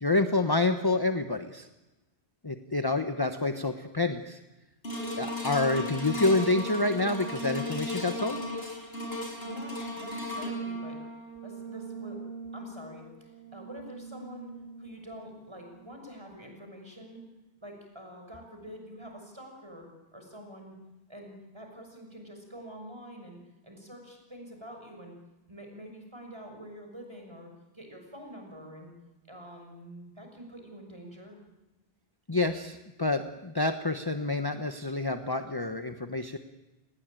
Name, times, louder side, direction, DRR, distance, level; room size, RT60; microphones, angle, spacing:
voice 1, 0.0-1.7 2.4-4.4 5.2-8.4 32.3-36.4, left 2 dB, 20° left, 7 dB, 1.1 m, -28 dB
sound 1, 4.8-15.2 15.8-15.9, equal, 65° left, 6.1 m, -37 dB
voice 2, 9.4-11.0 11.4-12.2 12.5-17.3 17.6-20.8 21.1-25.1 25.5-28.9 29.3-31.4, equal, 25° right, 3 dB, 6.7 m, -46 dB
29.5 x 20.5 x 9.1 m, 1.1 s
omnidirectional pair, 1.1 m